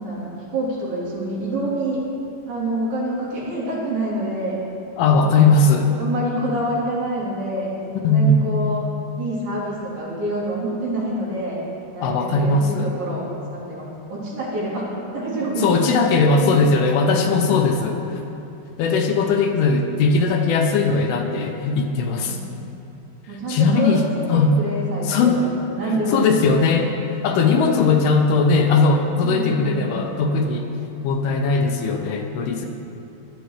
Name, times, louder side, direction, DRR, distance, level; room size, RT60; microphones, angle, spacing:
voice 1, 0.0-2.0 2.5-4.6 5.1-5.5 6.0-8.8 9.2-11.6 11.9-14.8 15.1-15.8 16.4-16.7 22.3-22.5 23.3-26.4 29.2-30.0, right 1 dB, 65° right, -8 dB, 5.1 m, -27 dB
voice 2, 5.0-5.9 8.0-8.5 12.0-12.9 15.6-18.2 18.8-22.4 23.5-24.0 24.3-24.5 25.0-25.4 25.9-26.9 27.2-30.7 31.0-32.7, left 4 dB, 80° left, 3 dB, 2.7 m, -19 dB
17.0 x 12.5 x 3.3 m, 2.9 s
omnidirectional pair, 4.6 m